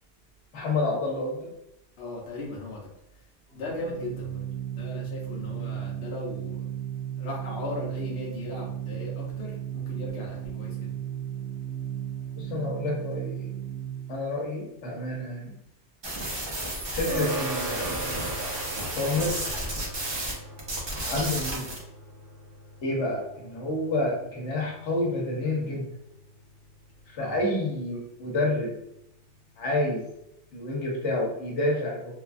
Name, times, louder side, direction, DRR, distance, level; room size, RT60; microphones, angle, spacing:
voice 1, 0.5-1.5 12.4-13.5 14.1-15.5 16.9-18.5 18.9-19.4 21.0-21.7 22.8-25.9 27.1-28.8 29.6-30.0 30.5-32.2, left 2 dB, 85° left, -2 dB, 1.2 m, -29 dB
voice 2, 2.0-2.9 3.5-4.4 4.7-6.6 7.2-10.9 27.2-27.4, left 2 dB, 65° left, -4 dB, 1.0 m, -37 dB
Organ, 3.5-14.2, right 10 dB, ahead, 1.0 m, -35 dB
sound 1, 16.0-20.3 20.6-21.8, right 1 dB, 35° right, 0.5 m, -32 dB
sound 2, 17.1-26.8, right 2 dB, 60° right, 0.9 m, -39 dB
3.1 x 2.3 x 2.4 m, 0.81 s
omnidirectional pair, 1.2 m